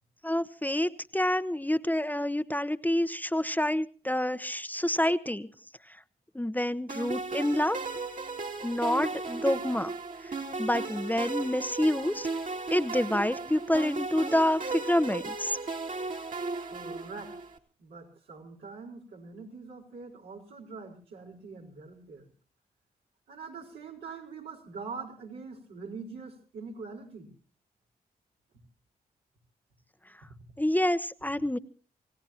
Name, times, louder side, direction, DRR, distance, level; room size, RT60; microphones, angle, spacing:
voice 1, 0.2-5.5 6.3-7.8 8.6-9.9 10.6-12.3 12.7-15.6 30.6-31.6, left 1 dB, 10° left, 12 dB, 0.9 m, -28 dB
sound 1, 6.9-17.6, right 3 dB, 50° right, 2.4 m, -36 dB
voice 2, 16.6-17.3 17.8-22.3 23.3-27.3, right 4 dB, 90° right, -3 dB, 4.2 m, -43 dB
28.5 x 17.0 x 2.9 m, 0.38 s
supercardioid pair, 45°, 17 cm